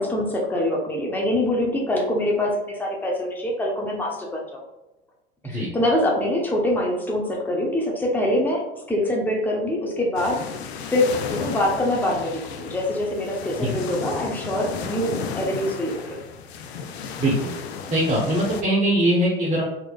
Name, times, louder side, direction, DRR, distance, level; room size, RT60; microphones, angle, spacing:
voice 1, 0.0-4.6 5.4-10.4 10.8-16.0, left 1 dB, 5° left, -2 dB, 0.8 m, -24 dB
sound 1, 10.2-18.6, left 6 dB, 80° left, 0.5 m, -34 dB
voice 2, 17.2-17.5 17.9-19.6, right 1 dB, 25° right, -7 dB, 1.2 m, -21 dB
3.9 x 3.0 x 2.3 m, 0.97 s
hypercardioid pair, 75°, 31 cm